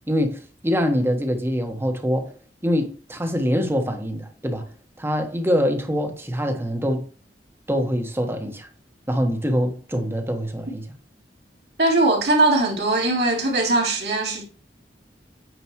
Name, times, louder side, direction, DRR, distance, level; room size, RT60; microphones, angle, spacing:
voice 1, 0.1-2.4 2.6-4.7 5.0-7.1 7.7-8.7 9.1-10.9, equal, 15° right, 1.4 m, -24 dB
voice 2, 11.8-14.4, right 2 dB, 65° right, 3.1 m, -20 dB
9.3 x 5.1 x 3.1 m
head